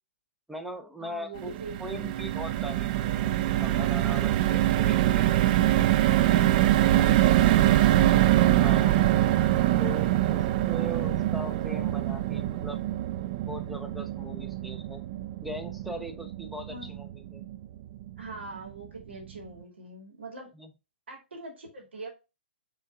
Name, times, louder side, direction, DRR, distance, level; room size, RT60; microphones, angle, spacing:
voice 1, 0.5-1.5 1.8-5.3 6.8-7.5 8.6-9.0 9.8-12.9 13.4-15.0 15.4-17.4 20.5-20.7, equal, ahead, 0.7 m, -40 dB
voice 2, 1.0-2.2 9.6-10.1 16.7-17.0 18.2-20.5 21.1-22.1, right 2 dB, 80° right, 2.4 m, -43 dB
sound 1, 1.4-17.7 18.1-18.2 18.5-18.7, right 14 dB, 45° right, 0.4 m, -24 dB
6.1 x 3.7 x 2.3 m
hypercardioid pair, 125°, 6 cm